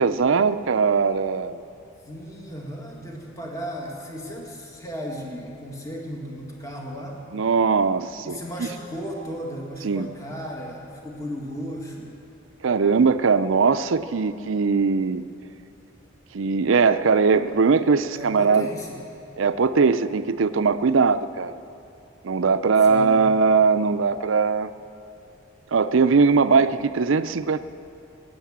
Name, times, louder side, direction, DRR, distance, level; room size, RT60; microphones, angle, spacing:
voice 1, 0.0-1.6 7.3-8.7 9.8-10.1 12.6-15.2 16.3-18.7 19.4-21.6 22.2-24.7 25.7-27.6, right 5 dB, 75° right, 12 dB, 0.5 m, -20 dB
voice 2, 2.1-7.2 8.2-12.1 18.1-19.0 22.9-23.3, equal, 15° left, -1 dB, 1.8 m, -35 dB
19.0 x 9.4 x 7.4 m, 2.7 s
head